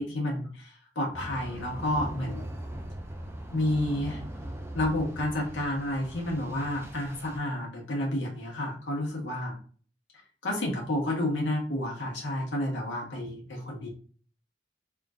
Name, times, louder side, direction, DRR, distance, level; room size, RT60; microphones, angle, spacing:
voice 1, 0.0-2.5 3.5-4.2 4.7-9.6 10.4-13.9, left 1 dB, 85° left, -2 dB, 1.4 m, -30 dB
sound 1, 1.1-7.4, right 1 dB, 15° right, 0.4 m, -40 dB
3.6 x 2.4 x 3.7 m, 0.42 s
head